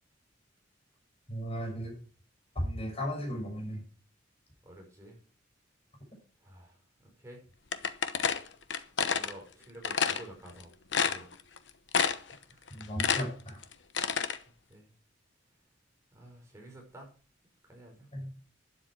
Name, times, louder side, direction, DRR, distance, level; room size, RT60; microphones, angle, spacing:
voice 1, 1.3-2.0 2.5-3.8 12.7-13.6 18.1-18.3, equal, 35° left, 1 dB, 6.5 m, -35 dB
voice 2, 4.6-5.2 6.4-7.4 9.1-10.7 11.0-11.3 11.9-12.7 14.7-14.9 16.1-17.1 17.7-18.1, right 1 dB, 15° right, 0 dB, 5.5 m, -51 dB
sound 1, 7.7-9.3 9.8-10.2 10.6-10.7 10.9-11.6 11.9-12.4 12.7-14.4, left 6 dB, 70° left, 1.0 m, -28 dB
12.0 x 10.5 x 4.7 m, 0.39 s
head